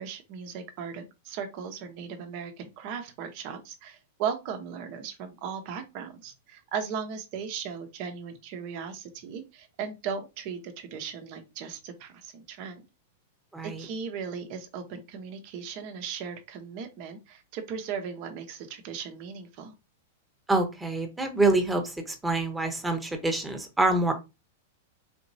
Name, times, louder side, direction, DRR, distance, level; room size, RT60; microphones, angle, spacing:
voice 1, 0.0-12.8 13.6-19.7, right 7 dB, 50° right, 6 dB, 0.9 m, -37 dB
voice 2, 13.5-13.8 20.5-24.1, right 2 dB, 10° right, 5 dB, 1.1 m, -26 dB
4.3 x 2.9 x 2.7 m, 0.25 s
hypercardioid pair, 105°, 0 cm